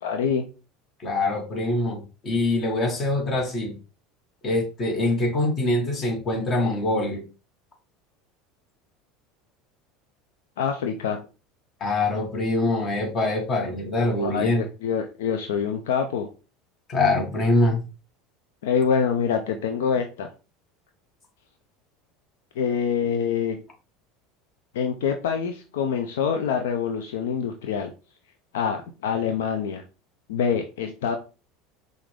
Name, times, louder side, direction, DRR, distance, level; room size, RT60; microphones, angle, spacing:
voice 1, 0.0-0.5 10.6-11.2 14.2-16.3 18.6-20.3 22.6-23.6 24.7-27.9 28.5-29.8 30.3-31.2, left 7 dB, 75° left, 5 dB, 0.5 m, -25 dB
voice 2, 1.0-3.7 4.4-7.2 11.8-14.6 16.9-17.8, left 2 dB, 40° left, 2 dB, 1.7 m, -24 dB
5.7 x 2.6 x 3.3 m, 0.32 s
hypercardioid pair, 80°, 0 cm